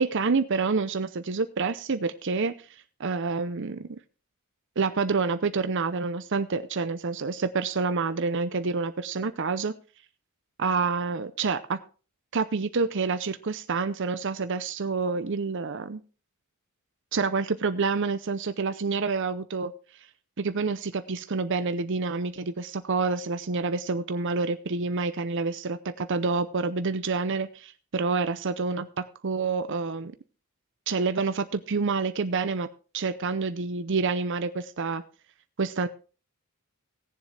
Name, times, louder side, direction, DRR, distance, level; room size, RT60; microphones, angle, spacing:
voice 1, 0.0-2.6 3.0-4.0 4.8-9.7 10.6-11.8 12.3-16.0 17.1-19.7 20.4-30.1 30.9-32.7 32.9-35.0 35.6-35.9, right 4 dB, 55° right, 10 dB, 0.6 m, -28 dB
18.0 x 7.3 x 3.3 m, 0.37 s
head